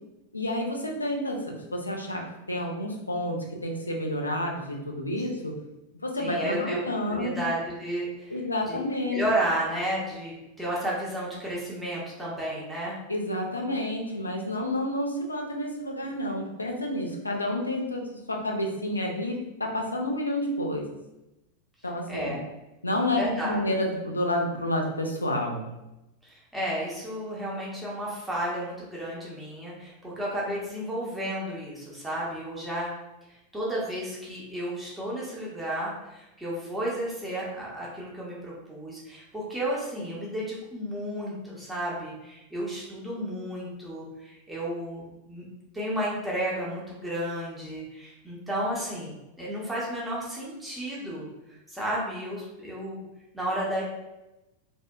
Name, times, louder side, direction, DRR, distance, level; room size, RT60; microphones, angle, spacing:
voice 1, 0.3-5.6 6.0-7.4 8.3-9.2 13.1-18.0 18.3-20.8 21.8-22.4 22.8-25.7, left 1 dB, 80° left, 1 dB, 0.4 m, -29 dB
voice 2, 6.2-6.8 7.1-8.4 8.7-8.8 9.1-13.0 22.1-22.4 23.2-23.6 26.2-32.9 33.3-45.4 45.7-53.1 53.3-53.8, right 1 dB, 5° right, -6 dB, 0.6 m, -32 dB
2.6 x 2.1 x 2.2 m, 0.96 s
figure-of-eight pair, 90°, 0 cm